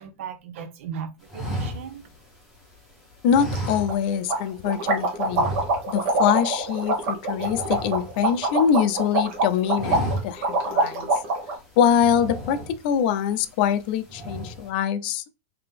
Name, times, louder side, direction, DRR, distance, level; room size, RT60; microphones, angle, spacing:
voice 1, 0.0-2.1, right 7 dB, 65° right, 0.7 m, -37 dB
sound 1, 1.3-2.8 3.3-4.4 4.6-4.8 5.2-6.1 6.4-6.6 6.9-8.7 9.1-9.3 9.6-10.6 11.0-11.1 11.9-13.0 13.5-13.8 14.1-14.7, right 1 dB, ahead, 1.0 m, -33 dB
voice 2, 3.2-5.5 5.9-11.1 11.8-15.2, left 8 dB, 40° left, 0.3 m, -24 dB
sound 2, 3.5-3.6 3.9-4.0 4.3-11.6, right 2 dB, 45° right, 1.1 m, -24 dB
3.6 x 2.8 x 3.3 m
supercardioid pair, 180°, 7 cm